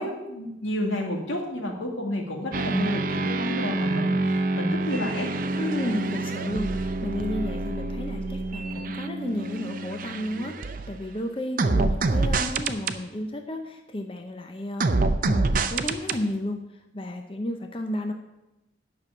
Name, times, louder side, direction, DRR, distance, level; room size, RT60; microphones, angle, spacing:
voice 1, 0.0-5.3, left 1 dB, 90° left, 1 dB, 2.3 m, -30 dB
sound 1, 2.5-11.1 11.6-13.0 14.8-16.2, right 2 dB, 45° right, 0.6 m, -27 dB
voice 2, 5.6-14.9 15.2-18.1, left 1 dB, 30° left, 4 dB, 0.7 m, -32 dB
9.5 x 6.2 x 8.4 m, 0.95 s
head